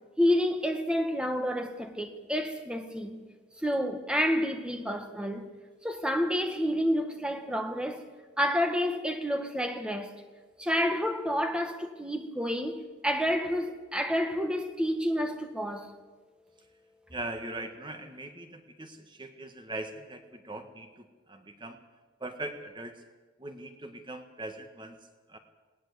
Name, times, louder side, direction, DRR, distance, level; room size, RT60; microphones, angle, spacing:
voice 1, 0.2-3.2 3.6-5.5 5.8-8.0 8.4-10.2 10.6-15.9, equal, 5° right, 1.7 m, -29 dB
voice 2, 17.1-21.8 22.2-23.0 23.4-25.4, right 2 dB, 25° right, 1.5 m, -41 dB
19.5 x 18.0 x 8.2 m
head